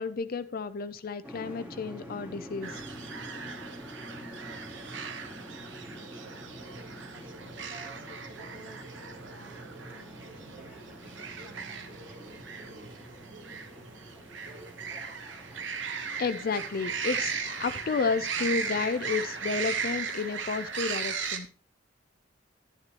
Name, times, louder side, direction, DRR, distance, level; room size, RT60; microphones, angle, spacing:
voice 1, 0.0-2.8 16.2-21.5, left 4 dB, 50° left, 11 dB, 0.4 m, -31 dB
sound 1, 1.2-20.0, equal, 10° right, 1.9 m, -47 dB
sound 2, 2.6-21.4, right 6 dB, 70° right, 1.1 m, -37 dB
voice 2, 7.1-9.6 9.9-13.1, right 1 dB, 45° right, 5 dB, 1.7 m, -53 dB
10.5 x 9.6 x 2.9 m, 0.37 s
head